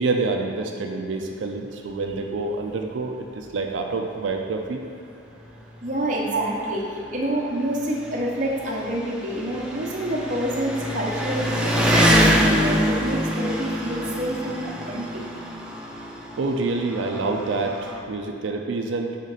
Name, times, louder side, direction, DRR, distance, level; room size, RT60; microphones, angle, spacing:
voice 1, 0.0-4.8 6.3-6.4 16.4-19.2, right 3 dB, 80° right, 3 dB, 0.4 m, -27 dB
Engine, 3.4-3.5 3.9-4.0 5.0-5.1 5.3-18.0, equal, 5° right, 0.4 m, -26 dB
voice 2, 5.8-15.3, right 1 dB, 40° right, -3 dB, 0.9 m, -28 dB
6.4 x 3.7 x 4.1 m, 2.5 s
head